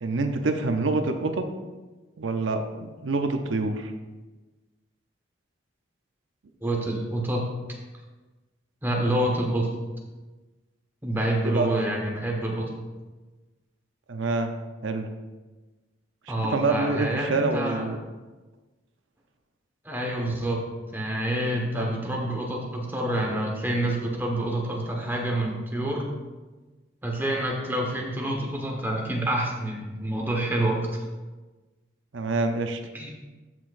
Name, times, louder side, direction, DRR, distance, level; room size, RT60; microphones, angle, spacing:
voice 1, 0.0-1.3 2.2-3.9 11.4-11.9 14.1-14.5 14.8-15.1 16.5-18.0 21.8-22.0 32.1-32.8, right 3 dB, 70° right, 6 dB, 0.6 m, -26 dB
voice 2, 6.6-7.5 8.8-9.7 11.0-12.7 16.3-17.9 19.8-26.1 27.0-30.9 32.9-33.1, right 1 dB, 10° right, 0 dB, 1.2 m, -27 dB
13.5 x 5.8 x 2.6 m, 1.2 s
head